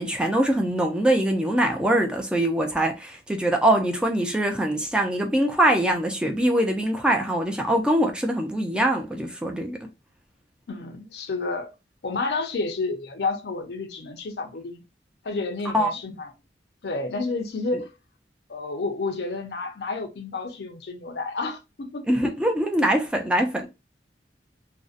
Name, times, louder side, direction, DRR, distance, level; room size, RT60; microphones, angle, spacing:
voice 1, 0.0-9.8 15.7-15.9 22.1-23.7, right 1 dB, 5° right, 0.3 m, -23 dB
voice 2, 10.7-11.7 12.0-14.8 15.2-16.3 16.8-17.9 18.5-22.0, left 3 dB, 65° left, 0.5 m, -30 dB
2.6 x 2.0 x 2.4 m
head